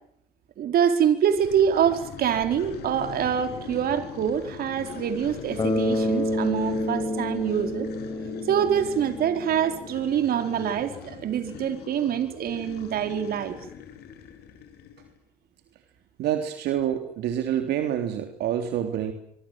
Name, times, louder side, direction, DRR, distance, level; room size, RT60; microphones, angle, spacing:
voice 1, 0.6-7.9 8.5-13.6, right 9 dB, 65° right, 8 dB, 4.5 m, -25 dB
sound 1, 1.3-15.2, left 8 dB, 75° left, 7.0 m, -41 dB
Bass guitar, 5.6-9.6, left 1 dB, 25° left, 6.0 m, -28 dB
voice 2, 16.2-19.1, right 10 dB, 80° right, 6 dB, 3.4 m, -27 dB
25.5 x 24.5 x 7.6 m, 0.73 s
cardioid pair, 110°, 17 cm